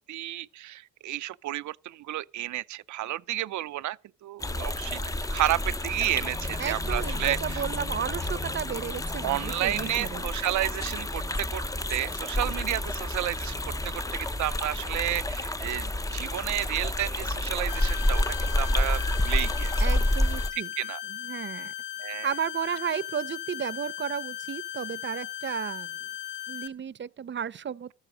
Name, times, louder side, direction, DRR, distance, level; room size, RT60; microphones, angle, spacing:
voice 1, 0.1-5.0 5.3-7.6 9.2-11.6 11.9-19.7 20.8-21.0 22.0-22.3, right 14 dB, 70° right, 0.7 m, -31 dB
sound 1, 4.4-20.5, left 1 dB, 10° left, 0.7 m, -29 dB
voice 2, 6.6-10.2 19.8-20.7 21.1-21.7 22.2-26.1 26.5-27.9, right 8 dB, 40° right, 0.8 m, -33 dB
sound 2, 17.7-26.7, left 12 dB, 75° left, 1.8 m, -37 dB
13.5 x 12.0 x 6.2 m
cardioid pair, 90°, 30 cm